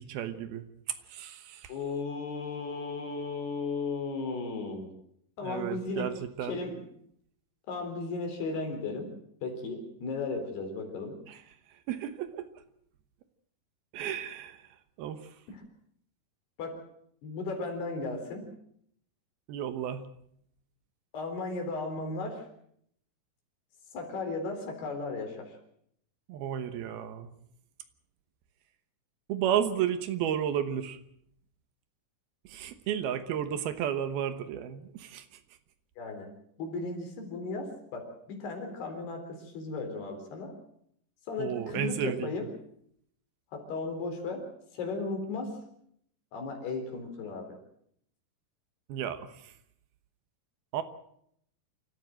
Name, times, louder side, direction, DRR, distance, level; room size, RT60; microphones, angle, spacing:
voice 1, 0.0-1.7 5.4-6.6 11.3-11.4 11.9-12.5 13.9-14.7 15.0-15.3 19.5-20.1 26.3-27.3 29.3-31.0 32.4-35.3 41.4-42.4 48.9-49.5 50.7-50.8, right 9 dB, 75° right, 11 dB, 2.9 m, -33 dB
voice 2, 1.7-4.9 5.4-6.1 6.4-6.8 7.7-9.1 9.4-11.2 15.5-15.6 16.6-16.8 17.2-18.5 21.1-22.4 23.9-25.6 36.0-36.3 36.6-40.5 41.3-42.5 43.5-44.4 44.7-45.5 46.3-47.6, left 3 dB, 75° left, 4 dB, 5.9 m, -35 dB
27.0 x 14.5 x 7.7 m, 0.70 s
omnidirectional pair, 4.7 m